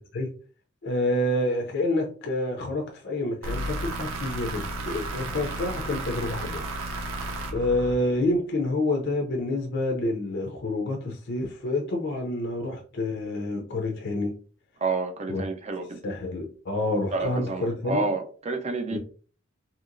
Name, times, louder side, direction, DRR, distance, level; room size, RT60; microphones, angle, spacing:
voice 1, 0.8-6.6 7.5-14.3 15.3-15.4 16.0-18.0 18.9-19.0, left 1 dB, 60° left, 0.5 m, -28 dB
sound 1, 3.4-8.4, right 2 dB, 85° right, 0.6 m, -33 dB
voice 2, 14.8-16.0 17.1-19.0, right 3 dB, 35° right, 0.5 m, -29 dB
2.8 x 2.8 x 2.5 m
head